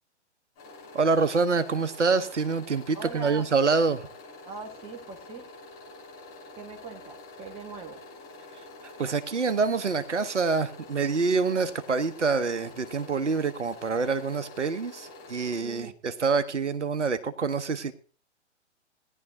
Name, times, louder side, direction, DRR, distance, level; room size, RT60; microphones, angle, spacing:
sound 1, 0.6-15.6, left 2 dB, 30° left, 7.7 m, -47 dB
voice 1, 0.9-4.1 9.0-17.9, right 4 dB, 75° right, 12 dB, 1.0 m, -26 dB
voice 2, 2.9-3.5 4.4-5.5 6.6-8.0 15.6-15.9, right 4 dB, 15° right, 5 dB, 1.5 m, -41 dB
18.0 x 11.0 x 2.7 m, 0.36 s
figure-of-eight pair, 125°, 35 cm